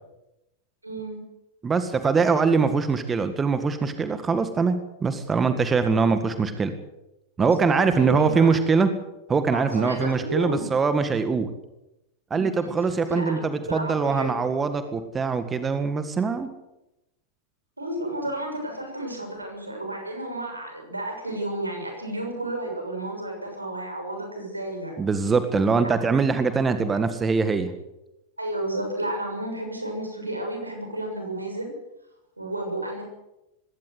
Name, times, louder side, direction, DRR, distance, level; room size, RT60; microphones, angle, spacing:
voice 1, 0.8-1.2 7.4-7.5 7.8-8.6 9.5-10.7 12.3-12.7 13.1-14.4 17.8-24.9 25.8-25.9 26.9-27.0 28.4-31.7 32.4-33.0, right 1 dB, 85° right, 3 dB, 6.7 m, -32 dB
voice 2, 1.6-6.7 7.4-8.9 9.3-11.5 12.3-16.5 25.0-27.7, right 4 dB, 15° right, 10 dB, 1.8 m, -23 dB
20.5 x 17.5 x 8.1 m, 0.92 s
figure-of-eight pair, 90°, 0 cm